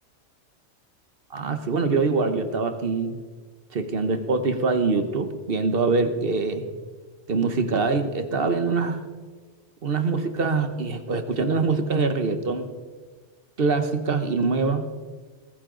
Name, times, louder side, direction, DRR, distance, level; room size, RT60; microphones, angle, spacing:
voice 1, 1.3-3.2 3.7-6.7 7.3-9.0 9.8-12.7 13.6-14.9, right 4 dB, 55° right, 9 dB, 1.3 m, -24 dB
22.5 x 14.5 x 3.9 m, 1.5 s
omnidirectional pair, 1.2 m